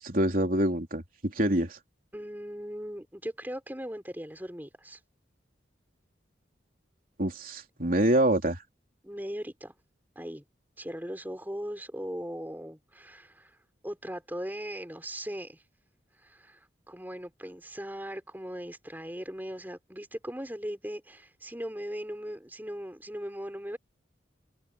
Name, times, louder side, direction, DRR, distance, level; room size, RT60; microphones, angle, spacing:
voice 1, 0.0-1.8 7.2-8.6, right 1 dB, 50° right, 3.5 m, -26 dB
voice 2, 2.1-5.0 9.0-9.7 10.2-10.4 10.8-13.6 13.8-15.6 16.2-23.8, equal, 10° right, 3.9 m, -39 dB
open air
head